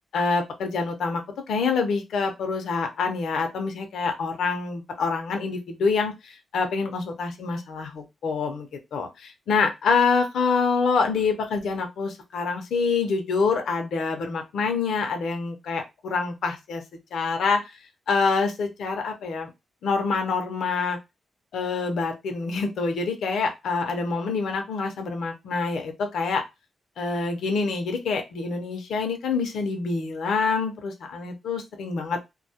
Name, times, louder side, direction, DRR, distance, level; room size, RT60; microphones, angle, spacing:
voice 1, 0.1-1.2 1.5-16.8 17.1-17.7 18.1-19.5 19.8-21.0 21.5-26.4 27.0-32.2, left 4 dB, 85° left, 4 dB, 0.5 m, -26 dB
2.2 x 2.0 x 2.7 m, 0.22 s
wide cardioid pair, 120°, 0 cm